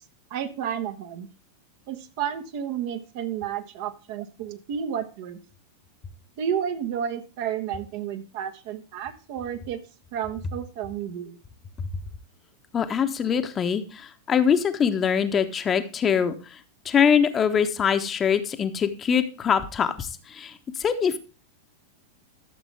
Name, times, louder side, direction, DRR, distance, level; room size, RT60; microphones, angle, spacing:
voice 1, 0.3-1.3 1.9-5.4 6.4-9.8 10.1-11.4, right 9 dB, 50° right, 7 dB, 1.3 m, -31 dB
voice 2, 12.7-16.3 16.8-20.5 20.8-21.2, left 7 dB, 25° left, 8 dB, 1.1 m, -23 dB
13.0 x 7.2 x 3.4 m, 0.34 s
figure-of-eight pair, 90°, 0 cm